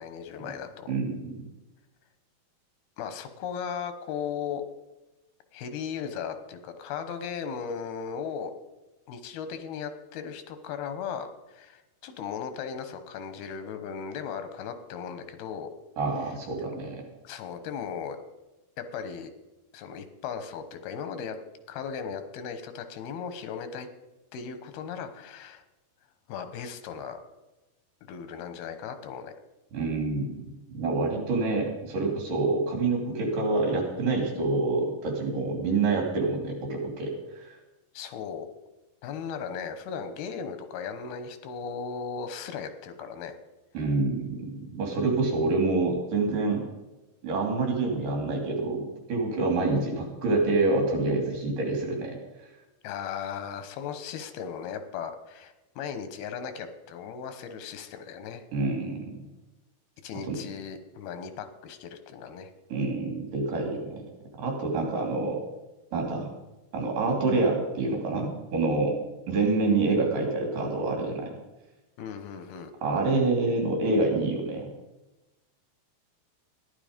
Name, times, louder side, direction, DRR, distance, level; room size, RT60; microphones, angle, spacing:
voice 1, 0.0-0.9 3.0-4.6 5.5-8.5 9.1-15.7 16.2-16.3 17.2-18.2 18.8-19.3 19.7-21.4 21.7-23.9 24.3-25.6 26.3-27.2 28.0-29.3 37.9-38.5 39.0-43.3 52.8-58.4 60.0-62.5 72.0-72.7, left 7 dB, 85° left, 9 dB, 3.1 m, -37 dB
voice 2, 0.9-1.3 16.0-17.0 29.7-37.6 43.7-46.6 47.2-52.2 58.5-59.1 60.3-60.4 62.7-64.0 64.4-65.4 65.9-66.3 66.7-69.0 69.3-71.4 72.8-74.7, right 3 dB, 60° right, 1 dB, 4.2 m, -27 dB
14.5 x 11.0 x 5.2 m, 1.0 s
omnidirectional pair, 4.3 m